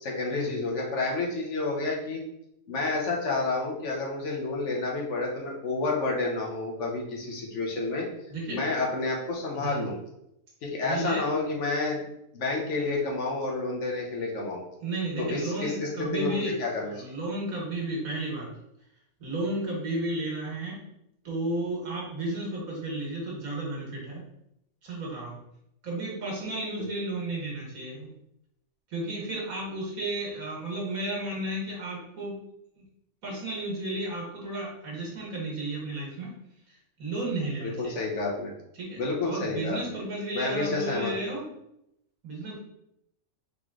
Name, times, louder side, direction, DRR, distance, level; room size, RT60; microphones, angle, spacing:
voice 1, 0.0-2.2 2.7-8.1 8.5-10.0 10.6-12.0 12.3-14.6 15.2-16.9 26.8-26.9 37.6-38.5 39.0-39.8 40.3-41.1, left 3 dB, 60° left, -1 dB, 1.3 m, -30 dB
voice 2, 9.5-9.9 10.8-11.3 14.8-16.6 16.9-18.5 19.2-20.8 21.2-24.2 24.8-25.4 25.8-28.1 28.9-32.4 32.8-32.9 33.2-36.3 36.7-38.0 38.7-41.5 42.2-42.6, right 2 dB, 80° right, -3 dB, 1.7 m, -33 dB
3.9 x 3.2 x 3.7 m, 0.80 s
omnidirectional pair, 1.5 m